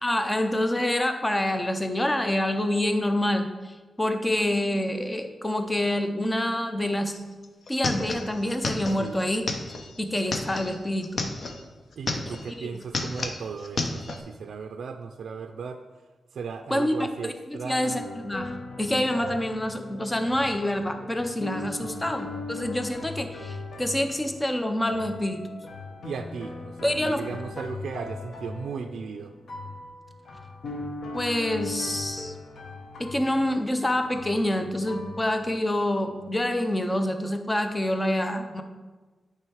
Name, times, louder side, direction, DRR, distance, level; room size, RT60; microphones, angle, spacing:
voice 1, 0.0-7.1 7.7-9.4 10.0-11.2 12.6-12.7 16.7-16.9 17.2-25.4 26.8-27.2 31.1-32.3 33.0-38.6, left 1 dB, 15° left, 7 dB, 0.5 m, -27 dB
sound 1, 7.1-7.2 7.4-11.6 11.9-12.5 12.8-14.2, left 3 dB, 55° left, 0.7 m, -31 dB
voice 2, 12.0-15.8 16.3-18.0 21.8-22.2 26.0-29.3, right 5 dB, 85° right, 6 dB, 0.3 m, -36 dB
sound 2, 17.8-36.4, left 2 dB, 75° left, 1.0 m, -39 dB
9.0 x 3.5 x 4.6 m, 1.3 s
wide cardioid pair, 120°, 0 cm